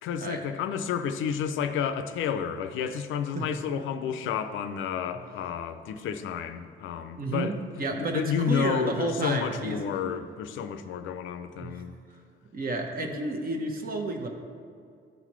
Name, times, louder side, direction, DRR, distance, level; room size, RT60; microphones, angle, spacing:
voice 1, 0.0-11.9, left 7 dB, 80° left, 9 dB, 0.5 m, -31 dB
voice 2, 7.1-9.8 10.0-10.1 11.6-11.8 12.5-14.3, right 2 dB, 45° right, 3 dB, 1.0 m, -31 dB
12.0 x 4.0 x 3.1 m, 2.3 s
cardioid pair, 90°, 20 cm